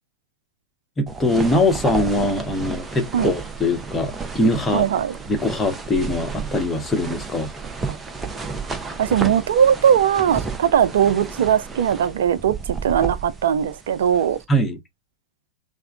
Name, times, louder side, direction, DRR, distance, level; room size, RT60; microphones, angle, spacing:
voice 1, 1.0-4.9 5.3-7.5 14.5-14.8, left 1 dB, 15° left, 0.9 m, -22 dB
sound 1, 1.1-14.4, right 4 dB, 15° right, 0.6 m, -32 dB
voice 2, 4.7-5.1 7.9-8.0 9.0-14.4, right 8 dB, 60° right, 0.3 m, -19 dB
3.4 x 2.0 x 3.4 m
figure-of-eight pair, 90°, 0 cm